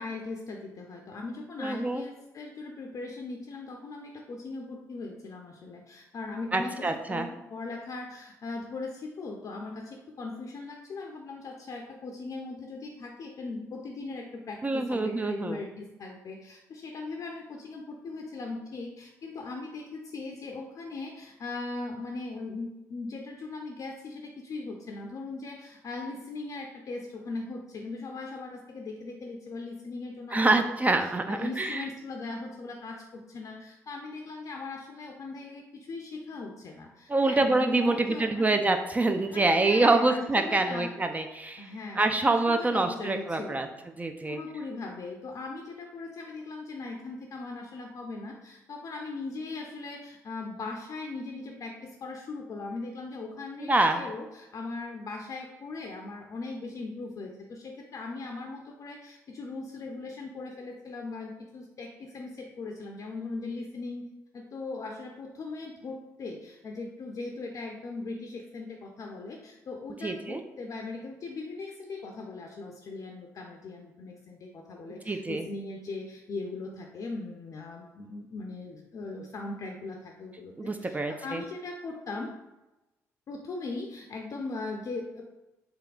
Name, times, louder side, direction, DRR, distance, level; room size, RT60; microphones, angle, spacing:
voice 1, 0.0-38.6 39.3-40.9 41.6-43.7 44.3-64.0 64.3-82.3 83.3-85.2, left 3 dB, 45° left, 1 dB, 0.5 m, -39 dB
voice 2, 1.6-2.0 6.5-7.3 14.6-15.6 30.3-31.9 37.1-41.7 42.0-43.7 44.0-44.4 53.6-54.0 70.0-70.4 75.1-75.4 80.6-81.4, right 2 dB, 20° right, 5 dB, 0.3 m, -26 dB
3.5 x 3.3 x 2.3 m, 0.99 s
hypercardioid pair, 45°, 8 cm